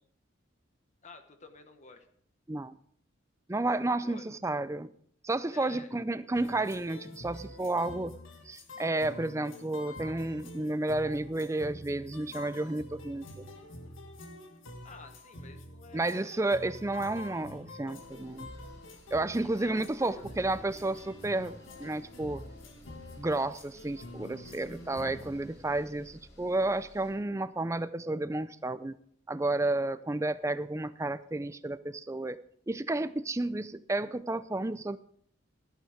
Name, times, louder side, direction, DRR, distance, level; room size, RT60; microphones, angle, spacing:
voice 1, 1.0-2.1 4.0-4.2 5.5-5.9 14.8-16.4 19.3-20.3, left 3 dB, 35° left, 7 dB, 1.0 m, -51 dB
voice 2, 3.5-4.9 5.2-8.2 8.5-13.4 15.9-18.5 19.1-22.4 23.2-28.9 29.3-32.4 32.7-35.0, right 2 dB, 15° right, 14 dB, 0.4 m, -31 dB
sound 1, 6.3-25.4, left 1 dB, 85° left, 1.7 m, -47 dB
sound 2, 18.0-27.1, left 1 dB, 60° left, 3.9 m, -58 dB
sound 3, 20.0-26.1, equal, 30° right, 2.9 m, -57 dB
14.0 x 9.3 x 5.0 m, 0.63 s
head